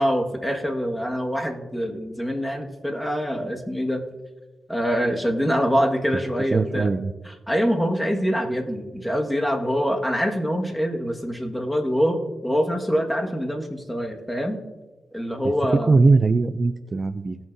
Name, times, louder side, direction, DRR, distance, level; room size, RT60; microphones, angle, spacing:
voice 1, 0.0-4.0 4.7-6.9 7.2-14.6 15.1-16.0, equal, 5° left, 2 dB, 1.7 m, -25 dB
voice 2, 6.5-7.1 15.9-17.4, right 3 dB, 45° right, 12 dB, 0.4 m, -20 dB
17.5 x 5.9 x 2.7 m, 1.2 s
supercardioid pair, 50°, 0 cm